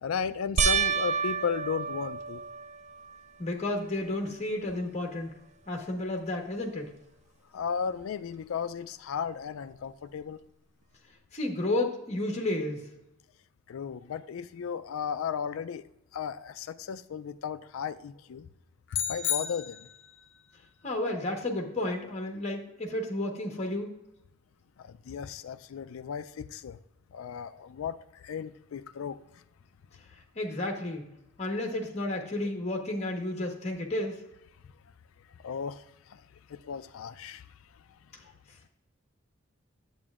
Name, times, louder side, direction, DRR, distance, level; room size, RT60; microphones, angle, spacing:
voice 1, 0.0-2.4 7.5-10.4 13.7-15.8 16.1-18.5 18.9-19.9 24.8-26.8 27.1-29.2 35.4-36.2 36.5-37.4, left 7 dB, 85° left, 0.4 m, -35 dB
sound 1, 0.6-3.2 3.8-4.4 4.7-4.8 8.0-8.1, right 5 dB, 35° right, 0.4 m, -30 dB
voice 2, 3.4-5.3 5.7-6.9 11.3-12.9 20.8-24.0 30.4-31.1 31.4-34.2, left 1 dB, 35° left, 1.2 m, -32 dB
sound 2, 18.9-20.2, left 9 dB, 60° left, 0.7 m, -32 dB
8.8 x 7.6 x 2.4 m
head